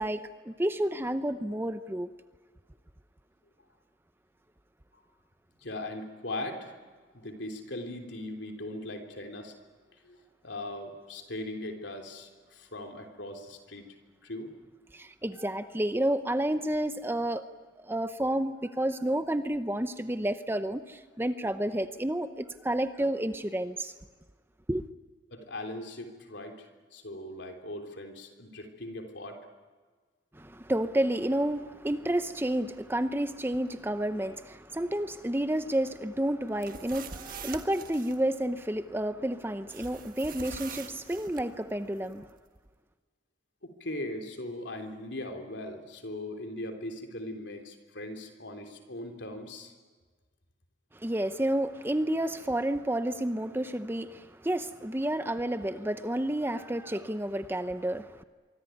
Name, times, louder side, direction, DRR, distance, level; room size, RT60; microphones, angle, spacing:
voice 1, 0.0-2.1 14.9-17.4 17.8-23.9 24.7-24.8 30.3-42.3 50.9-58.2, right 1 dB, 10° right, 10 dB, 0.8 m, -30 dB
voice 2, 5.6-6.8 7.1-9.5 10.0-10.2 10.4-13.9 14.2-14.6 25.3-29.5 43.6-49.7, left 1 dB, 65° left, 4 dB, 3.5 m, -39 dB
sound 1, 36.5-38.2 39.7-41.5, right 5 dB, 45° right, 1.6 m, -43 dB
25.0 x 24.5 x 9.3 m, 1.4 s
head